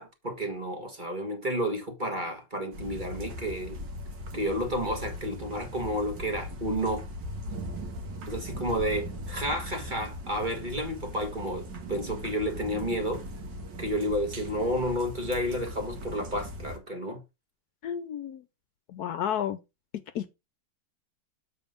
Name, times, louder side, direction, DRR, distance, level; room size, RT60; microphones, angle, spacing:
voice 1, 0.0-3.8 4.3-7.0 8.3-13.2 13.8-17.2, equal, 30° right, 1.6 m, -31 dB
sound 1, 2.7-16.8, equal, 85° right, 2.2 m, -39 dB
voice 2, 17.8-18.4 18.9-19.6 20.1-20.3, left 9 dB, 70° left, 1.1 m, -31 dB
7.3 x 4.4 x 5.1 m
omnidirectional pair, 1.9 m